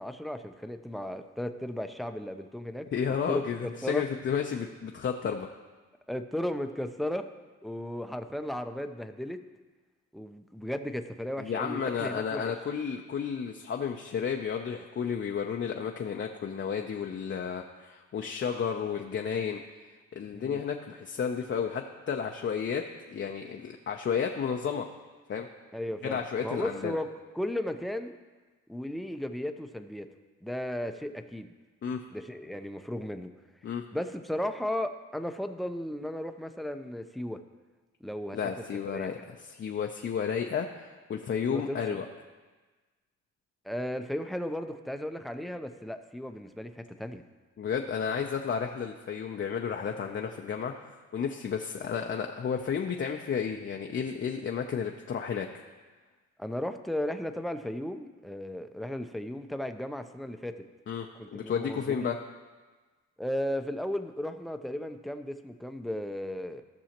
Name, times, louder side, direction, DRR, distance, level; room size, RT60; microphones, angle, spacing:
voice 1, 0.0-2.9 3.3-3.4 3.8-4.0 6.1-7.3 7.6-9.4 10.1-12.5 20.3-20.6 25.7-27.1 27.3-28.1 28.7-30.1 30.4-31.5 32.1-33.3 33.9-37.4 38.0-38.4 38.8-39.3 41.5-42.0 43.6-47.2 56.4-60.6 61.1-62.1 63.2-66.6, left 1 dB, ahead, 7 dB, 0.5 m, -35 dB
voice 2, 2.9-5.5 11.4-19.6 20.1-24.9 25.3-25.5 26.0-27.0 31.8-32.0 33.6-33.8 38.3-42.0 47.6-55.5 60.9-61.1 61.3-62.2, left 7 dB, 40° left, 2 dB, 0.6 m, -32 dB
15.5 x 6.2 x 2.9 m, 1.3 s
cardioid pair, 90°, 30 cm